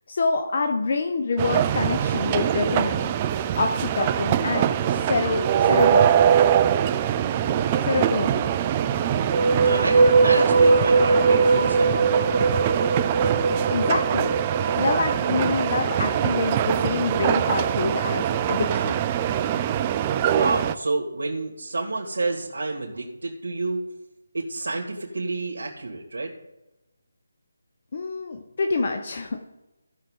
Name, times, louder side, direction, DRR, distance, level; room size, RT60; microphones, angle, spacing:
voice 1, 0.1-3.1 3.5-6.3 7.8-8.5 13.7-14.4 14.7-19.0 27.9-29.4, left 3 dB, 35° left, 5 dB, 0.8 m, -26 dB
sound 1, 1.4-20.7, right 10 dB, 15° right, 0.3 m, -23 dB
sound 2, 9.2-16.5, right 3 dB, 50° right, 0.9 m, -21 dB
voice 2, 9.6-12.5 20.3-23.8 24.3-26.3, right 3 dB, 70° right, -1 dB, 2.5 m, -29 dB
17.0 x 6.6 x 3.8 m, 0.98 s
figure-of-eight pair, 175°, 0 cm